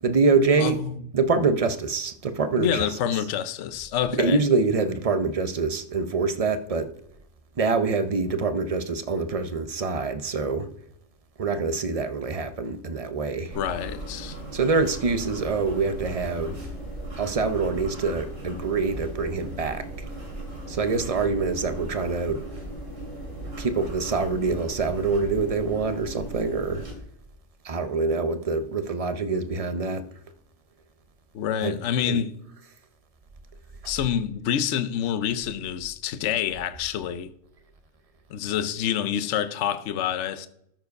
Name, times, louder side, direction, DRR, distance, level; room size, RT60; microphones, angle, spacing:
voice 1, 0.0-0.8 1.1-2.9 4.2-6.9 7.6-10.7 11.4-13.5 14.5-16.6 17.2-19.8 20.7-22.4 23.6-26.8 27.6-30.0 31.6-31.8 32.0-32.2, right 4 dB, 40° right, 0.5 m, -25 dB
voice 2, 0.6-1.0 2.6-4.4 13.5-14.4 31.3-32.3 33.8-37.3 38.3-40.5, left 9 dB, 70° left, 0.9 m, -27 dB
sound 1, 13.5-26.9, right 1 dB, 85° right, 3.1 m, -37 dB
13.0 x 4.7 x 5.2 m
omnidirectional pair, 1.3 m